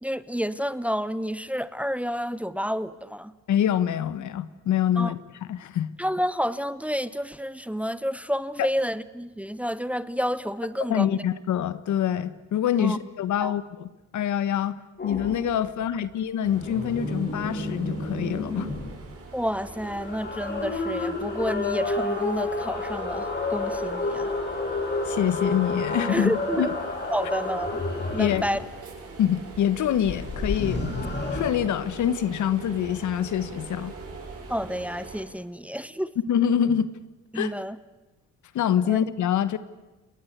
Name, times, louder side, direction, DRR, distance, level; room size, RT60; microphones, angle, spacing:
voice 1, 0.0-3.3 5.0-5.1 6.0-11.2 12.8-13.0 13.4-13.5 19.3-24.3 26.1-26.8 27.1-27.8 28.1-28.6 34.5-36.1 37.3-37.8 38.8-39.0, equal, 5° right, 15 dB, 0.9 m, -29 dB
voice 2, 3.5-5.2 5.5-5.9 8.6-8.7 10.9-14.8 15.0-18.7 25.0-26.7 28.2-28.4 29.2-30.9 31.3-33.9 36.3-36.9 37.3-37.5 38.5-39.6, left 9 dB, 75° left, 14 dB, 1.4 m, -25 dB
sound 1, 15.0-15.4 16.5-18.9 19.6-28.6 30.0-31.5, left 2 dB, 35° left, 6.3 m, -30 dB
sound 2, 16.4-35.2, right 4 dB, 50° right, 7.9 m, -43 dB
30.0 x 20.0 x 8.3 m, 1.1 s
cardioid pair, 90°, 30 cm